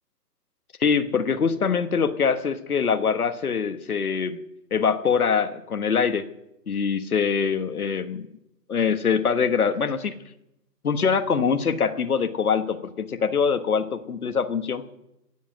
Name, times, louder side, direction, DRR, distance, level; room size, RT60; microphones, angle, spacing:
voice 1, 0.8-4.4 4.7-6.3 6.7-8.3 8.7-10.1 10.8-14.9, left 6 dB, 60° left, 10 dB, 1.3 m, -23 dB
17.0 x 7.5 x 7.6 m, 0.86 s
hypercardioid pair, 180°, 49 cm